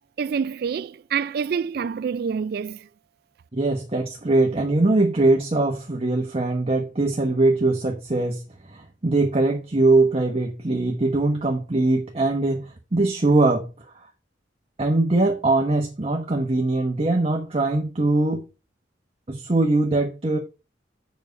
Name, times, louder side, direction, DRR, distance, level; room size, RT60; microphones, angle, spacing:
voice 1, 0.2-2.9, right 6 dB, 55° right, 0.3 m, -27 dB
voice 2, 3.5-13.7 14.8-18.4 19.3-20.4, right 2 dB, 35° right, 0.9 m, -22 dB
7.3 x 5.2 x 5.2 m
head